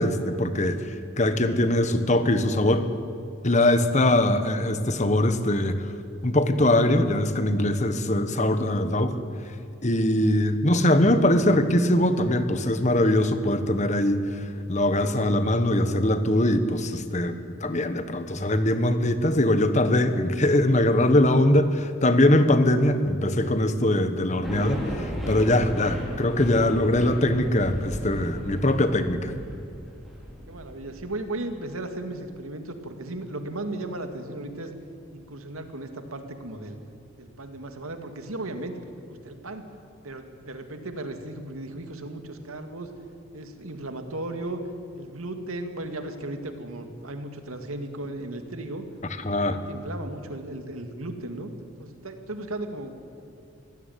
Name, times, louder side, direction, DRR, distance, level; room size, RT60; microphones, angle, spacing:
voice 1, 0.0-2.8 3.4-5.9 6.2-9.2 9.8-14.2 14.7-29.3 49.2-49.6, left 1 dB, 35° left, 10 dB, 1.4 m, -22 dB
sound 1, 24.4-31.0, equal, ahead, 4.8 m, -35 dB
voice 2, 30.5-34.7 35.1-36.8 37.2-39.7 40.0-42.9 43.3-44.6 44.9-48.8 49.4-51.5 51.8-53.0, right 2 dB, 90° right, 6 dB, 2.3 m, -36 dB
23.0 x 16.5 x 9.5 m, 2.4 s
head